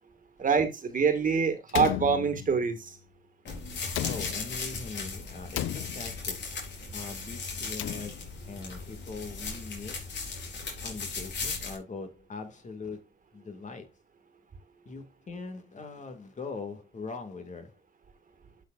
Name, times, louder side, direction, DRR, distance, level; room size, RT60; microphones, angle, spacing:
voice 1, 0.4-3.0, right 5 dB, 40° right, 1.9 m, -25 dB
Slam, 1.7-2.8 3.8-4.8 5.5-6.4 7.5-8.5, left 13 dB, 80° left, 0.5 m, -35 dB
sound 1, 3.4-11.8, left 4 dB, 65° left, 4.6 m, -37 dB
voice 2, 4.0-6.5 6.9-10.0 10.8-13.0 13.3-13.9 14.9-17.8, left 4 dB, 40° left, 2.2 m, -41 dB
11.5 x 6.6 x 2.5 m
cardioid pair, 90°, 20 cm